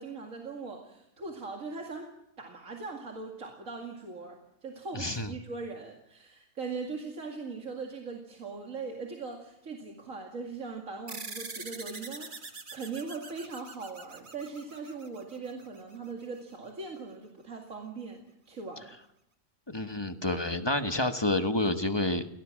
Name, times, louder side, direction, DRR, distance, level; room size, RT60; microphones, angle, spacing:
voice 1, 0.0-2.1 2.4-18.9, right 4 dB, 85° right, 1 dB, 2.7 m, -40 dB
voice 2, 4.9-5.3 19.7-22.3, left 2 dB, 20° left, 7 dB, 1.1 m, -29 dB
sound 1, 11.1-15.9, right 3 dB, 40° right, 1.7 m, -44 dB
23.0 x 17.5 x 7.4 m, 0.81 s
omnidirectional pair, 1.4 m